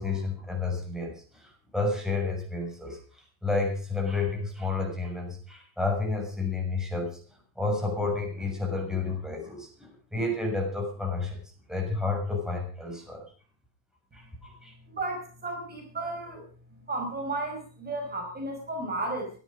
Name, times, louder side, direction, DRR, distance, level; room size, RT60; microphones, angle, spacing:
voice 1, 0.0-7.2 7.5-11.4 11.7-13.2 14.1-14.7, left 3 dB, ahead, 1 dB, 6.7 m, -31 dB
voice 2, 14.9-16.4 16.9-19.3, right 2 dB, 25° right, 3 dB, 6.0 m, -33 dB
16.5 x 13.5 x 5.2 m, 0.41 s
supercardioid pair, 120°, 41 cm